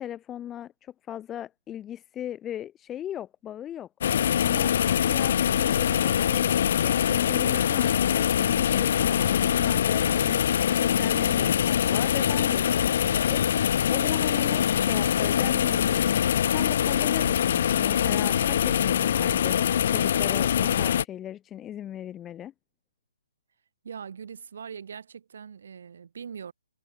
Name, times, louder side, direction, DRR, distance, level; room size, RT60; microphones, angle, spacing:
voice 1, 0.0-3.9 4.4-4.7 5.0-10.5 10.8-16.1 16.5-22.5, left 11 dB, 10° left, 0.9 m, -38 dB
sound 1, 4.0-21.0, left 9 dB, 35° left, 0.5 m, -23 dB
voice 2, 23.8-26.5, right 7 dB, 50° right, 5.0 m, -41 dB
hypercardioid pair, 175°, 0 cm